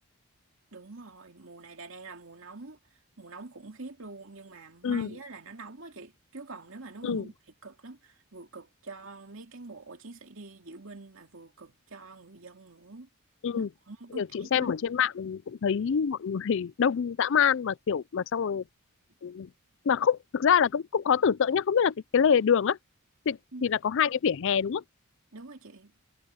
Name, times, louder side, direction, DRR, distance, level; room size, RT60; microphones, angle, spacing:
voice 1, 0.7-2.8 3.2-7.3 7.6-13.1 13.5-14.7 23.5-23.7 25.3-25.9, right 3 dB, 60° right, 2.8 m, -45 dB
voice 2, 14.2-18.6 19.2-19.5 19.9-22.8 23.3-24.8, left 7 dB, 55° left, 0.4 m, -26 dB
head